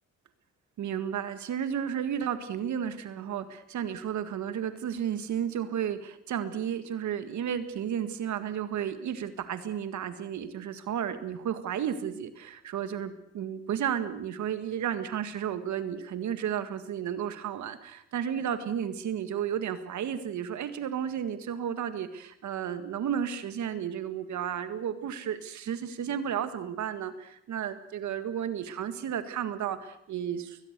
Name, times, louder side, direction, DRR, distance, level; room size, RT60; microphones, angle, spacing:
voice 1, 0.8-30.6, right 9 dB, 70° right, 10 dB, 1.9 m, -33 dB
21.5 x 21.0 x 6.8 m, 0.70 s
cardioid pair, 90°, 30 cm